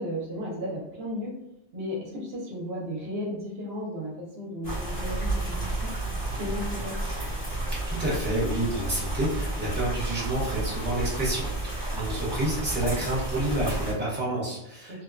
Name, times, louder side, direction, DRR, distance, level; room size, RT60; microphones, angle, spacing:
voice 1, 0.0-1.4 1.7-5.9 6.3-7.0 14.9-15.0, equal, 70° right, -2 dB, 0.8 m, -34 dB
sound 1, 4.6-13.9, right 2 dB, 60° left, 1.5 m, -31 dB
voice 2, 7.7-15.0, right 1 dB, 10° right, -6 dB, 0.8 m, -29 dB
2.8 x 2.1 x 2.4 m, 0.83 s
omnidirectional pair, 1.1 m